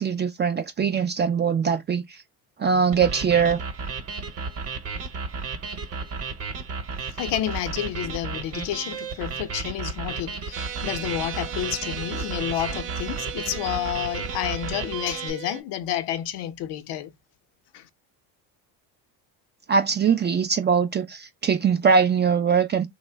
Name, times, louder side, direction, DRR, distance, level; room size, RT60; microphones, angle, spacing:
voice 1, 0.0-2.2 2.6-3.6 19.7-22.9, right 6 dB, 25° right, 0.3 m, -22 dB
sound 1, 2.9-15.3, right 4 dB, 45° right, 1.0 m, -33 dB
voice 2, 7.0-17.1 17.7-17.9, left 11 dB, 65° left, 0.6 m, -30 dB
sound 2, 10.5-15.6, right 10 dB, 85° right, 0.6 m, -37 dB
3.0 x 2.1 x 3.3 m
supercardioid pair, 85°, 44 cm